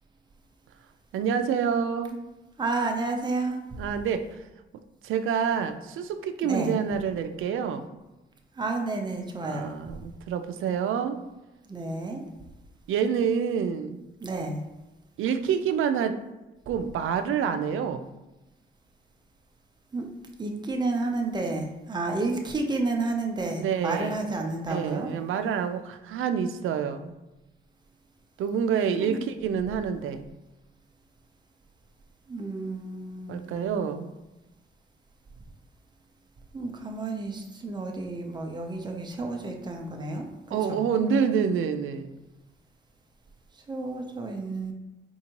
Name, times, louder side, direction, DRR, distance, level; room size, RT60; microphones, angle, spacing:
voice 1, 1.1-2.2 3.7-4.4 5.0-7.9 9.4-11.2 12.9-14.0 15.2-16.2 16.7-18.0 23.6-24.2 24.7-27.1 28.4-30.2 33.3-34.1 40.5-42.1, right 7 dB, 80° right, 9 dB, 0.4 m, -27 dB
voice 2, 2.6-3.6 6.4-6.7 8.6-9.7 11.7-12.2 14.2-14.6 19.9-20.1 20.4-25.1 29.0-29.2 32.3-33.6 36.5-40.8 43.7-44.7, right 3 dB, 20° right, 2 dB, 0.6 m, -31 dB
4.4 x 2.7 x 2.9 m, 1.0 s
cardioid pair, 95°, 21 cm